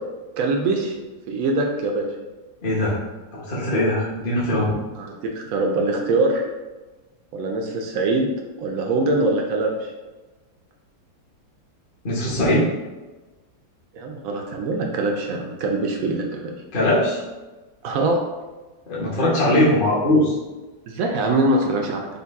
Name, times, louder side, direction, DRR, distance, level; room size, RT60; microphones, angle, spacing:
voice 1, 0.4-0.9 1.3-2.1 5.0-6.4 7.3-8.3 8.6-9.9 13.9-16.4 17.8-18.2 20.9-22.1, right 2 dB, 80° right, 1 dB, 0.7 m, -23 dB
voice 2, 2.6-3.0 3.3-4.7 12.0-12.7 16.7-17.2 18.9-20.4, left 1 dB, 40° left, -6 dB, 0.7 m, -20 dB
5.4 x 2.2 x 3.4 m, 1.2 s
omnidirectional pair, 2.1 m